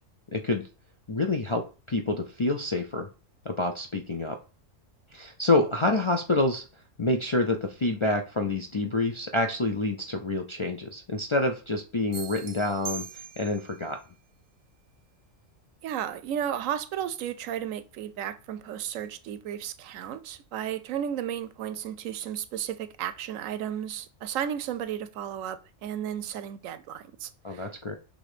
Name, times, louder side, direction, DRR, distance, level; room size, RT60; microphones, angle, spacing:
voice 1, 0.3-0.7 1.1-3.1 3.4-4.4 5.1-6.6 7.0-14.0 27.4-28.0, left 2 dB, 45° left, 0.3 m, -27 dB
sound 1, 12.1-13.8, right 6 dB, 40° right, 0.5 m, -40 dB
voice 2, 15.8-27.7, right 10 dB, 80° right, 1.0 m, -34 dB
6.2 x 3.5 x 5.0 m
omnidirectional pair, 1.4 m